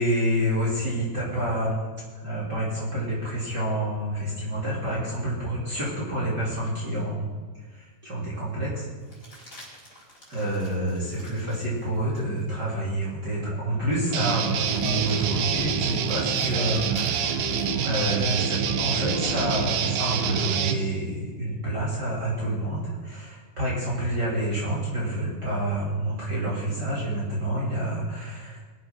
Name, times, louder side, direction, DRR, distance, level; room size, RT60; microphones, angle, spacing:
voice 1, 0.0-1.9 2.1-7.3 7.7-8.9 9.4-9.5 10.3-28.6, right 1 dB, 30° right, -7 dB, 3.5 m, -28 dB
sound 1, 7.4-7.5 9.0-12.5 13.0-13.1 14.4-18.5 20.7-21.5, left 1 dB, 25° left, 5.5 m, -51 dB
Guitar, 14.1-20.8, right 8 dB, 75° right, 2.2 m, -26 dB
sound 2, 14.5-20.3, left 2 dB, 85° left, 4.0 m, -36 dB
21.0 x 7.8 x 6.0 m, 1.4 s
omnidirectional pair, 3.7 m